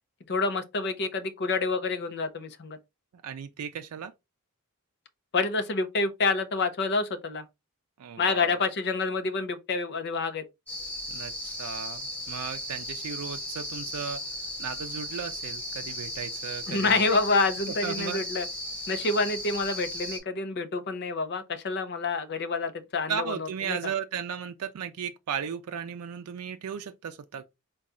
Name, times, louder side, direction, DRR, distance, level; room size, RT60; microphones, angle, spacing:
voice 1, 0.3-2.8 5.3-7.4 8.2-10.4 16.7-18.5 18.9-23.9, left 3 dB, 50° left, 0.6 m, -28 dB
voice 2, 3.2-4.1 8.0-8.6 11.1-14.2 14.6-17.2 17.8-18.2 23.1-27.4, right 7 dB, 90° right, 0.4 m, -35 dB
sound 1, 10.7-20.2, left 1 dB, 5° left, 2.0 m, -36 dB
4.1 x 2.3 x 3.6 m
head